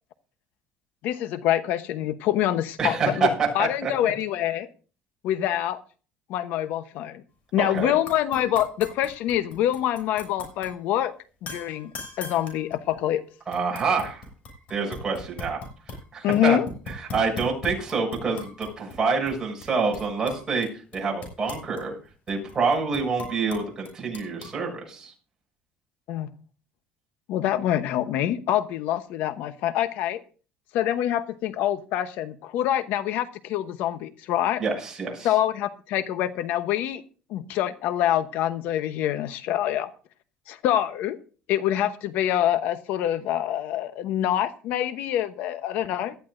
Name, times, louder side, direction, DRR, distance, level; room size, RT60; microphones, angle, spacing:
voice 1, 1.0-4.7 5.2-5.8 6.3-7.2 7.5-11.1 11.4-11.9 12.2-13.2 16.2-16.7 26.1-26.3 27.3-30.2 30.7-34.6 35.2-37.0 37.3-39.9 40.5-41.2 41.5-46.1, left 12 dB, 70° left, 11 dB, 0.9 m, -25 dB
voice 2, 2.8-3.9 7.6-7.9 13.5-14.3 14.7-15.6 16.1-16.6 16.9-22.0 22.3-25.1 34.6-35.3, right 4 dB, 20° right, -1 dB, 6.9 m, -27 dB
sound 1, 7.8-7.9 8.1-10.7 11.5-13.1 13.5-16.0 16.3-19.0 19.3-19.4 19.6-20.7 20.9-24.5, left 2 dB, 50° left, 6.6 m, -40 dB
18.5 x 13.5 x 2.6 m, 0.38 s
cardioid pair, 150°, 3 cm